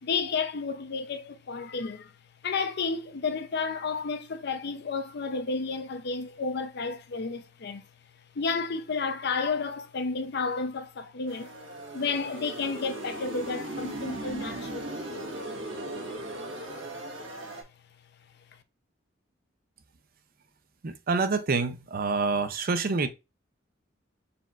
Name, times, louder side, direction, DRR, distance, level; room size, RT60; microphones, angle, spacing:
voice 1, 0.0-2.1 2.4-7.9 8.4-11.5 11.9-15.3, left 4 dB, 55° left, 0.6 m, -31 dB
sound 1, 11.3-17.6, right 1 dB, 75° right, 1.5 m, -38 dB
voice 2, 20.8-23.1, right 4 dB, 50° right, 0.5 m, -27 dB
4.3 x 4.1 x 2.4 m
head